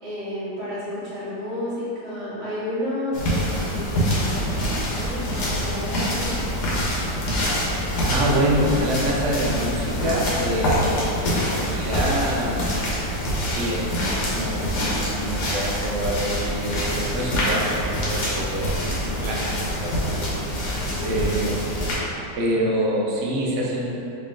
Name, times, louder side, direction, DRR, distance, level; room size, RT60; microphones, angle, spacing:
voice 1, 0.0-6.7 18.8-19.3 20.9-21.4, left 1 dB, 40° right, -11 dB, 1.3 m, -32 dB
sound 1, 3.1-22.0, equal, 70° left, 1.4 m, -25 dB
voice 2, 8.0-12.8 13.5-18.7 19.0-20.3 21.0-21.6 22.4-23.9, right 1 dB, 75° right, -3 dB, 0.6 m, -26 dB
3.3 x 2.9 x 3.6 m, 2.8 s
omnidirectional pair, 1.9 m